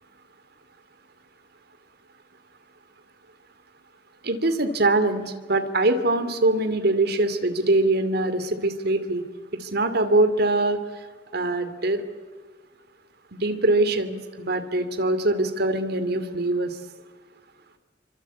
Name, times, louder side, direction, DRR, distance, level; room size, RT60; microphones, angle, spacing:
voice 1, 4.2-9.2 9.5-10.8 11.3-12.0 13.3-16.8, right 2 dB, 60° right, 9 dB, 2.8 m, -23 dB
28.0 x 24.5 x 8.5 m, 1.4 s
head